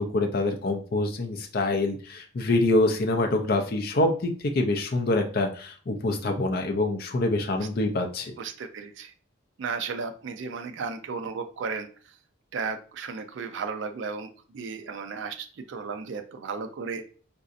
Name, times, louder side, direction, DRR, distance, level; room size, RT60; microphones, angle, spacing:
voice 1, 0.0-8.3, left 2 dB, 45° left, 3 dB, 0.4 m, -25 dB
voice 2, 8.4-9.1 9.6-12.2 12.5-17.0, right 5 dB, 65° right, 6 dB, 0.4 m, -34 dB
4.0 x 2.6 x 2.5 m, 0.41 s
head